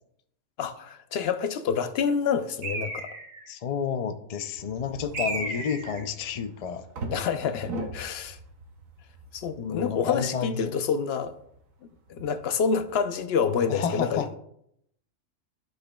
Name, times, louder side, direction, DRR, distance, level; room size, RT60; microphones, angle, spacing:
voice 1, 0.6-3.1 5.0-5.5 7.1-8.4 9.3-11.4 12.1-14.3, left 6 dB, 60° left, 0.7 m, -28 dB
Bird, 2.6-3.5 5.1-6.1, right 2 dB, 60° right, 1.5 m, -33 dB
voice 2, 3.5-6.9 9.6-10.7 13.7-14.4, left 7 dB, 80° left, 0.3 m, -30 dB
sound 1, 4.6-13.2, right 2 dB, 90° right, 1.3 m, -42 dB
13.0 x 5.0 x 2.3 m
omnidirectional pair, 1.4 m